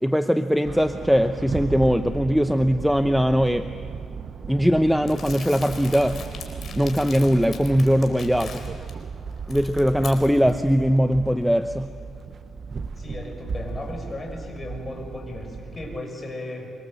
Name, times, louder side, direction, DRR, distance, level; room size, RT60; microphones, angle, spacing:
voice 1, 0.0-3.7 4.5-6.2 6.7-8.7 9.5-11.9, equal, ahead, 9 dB, 0.8 m, -21 dB
sound 1, 0.6-16.0, right 5 dB, 45° right, 0.9 m, -36 dB
Crumpling crinkling, 5.1-8.9 9.3-10.6, left 6 dB, 55° left, 4.3 m, -41 dB
voice 2, 13.0-16.7, left 1 dB, 25° left, 2 dB, 6.3 m, -35 dB
25.5 x 24.5 x 7.9 m, 2.3 s
cardioid pair, 90°, 0 cm